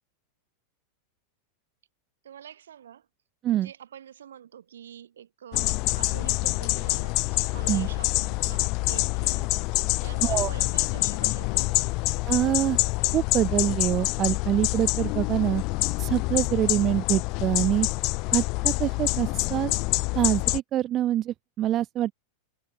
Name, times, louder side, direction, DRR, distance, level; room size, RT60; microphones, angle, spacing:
voice 1, 2.2-3.1 3.5-9.6 10.0-12.0, right 9 dB, 65° right, 5.1 m, -46 dB
sound 1, 5.5-20.6, left 26 dB, 40° left, 0.8 m, -26 dB
voice 2, 12.3-12.8 13.1-15.6 16.0-17.9 18.3-19.7 20.1-22.1, right 13 dB, 30° right, 0.8 m, -25 dB
figure-of-eight pair, 90°, 0 cm